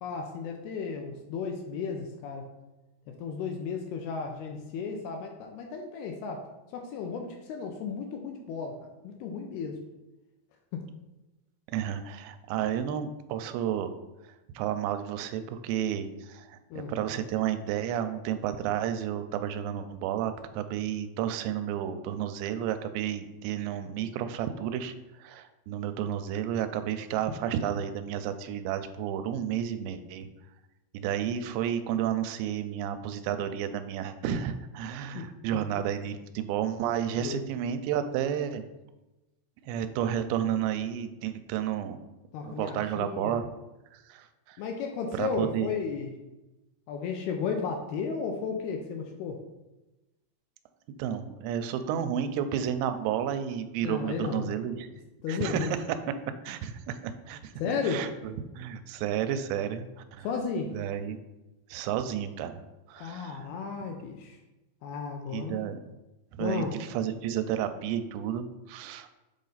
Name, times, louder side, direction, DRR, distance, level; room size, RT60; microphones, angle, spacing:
voice 1, 0.0-2.5 3.1-6.5 6.7-9.8 10.7-10.8 16.7-16.9 35.1-35.2 35.5-35.9 37.2-37.5 42.3-43.4 44.6-46.1 46.9-49.4 53.8-54.5 55.2-55.7 57.6-58.0 60.2-60.8 63.0-64.4 64.8-65.6 66.4-66.8, left 5 dB, 80° left, 3 dB, 2.4 m, -34 dB
voice 2, 11.7-13.9 14.6-30.3 30.9-38.6 39.6-42.0 42.4-43.4 43.9-44.6 45.1-45.7 51.0-54.9 55.3-56.2 56.4-57.5 57.8-60.3 60.7-61.2 61.7-62.6 62.9-63.5 65.3-65.8 66.3-69.2, right 9 dB, 85° right, 9 dB, 2.7 m, -31 dB
7.4 x 4.1 x 3.9 m, 1.0 s
omnidirectional pair, 5.0 m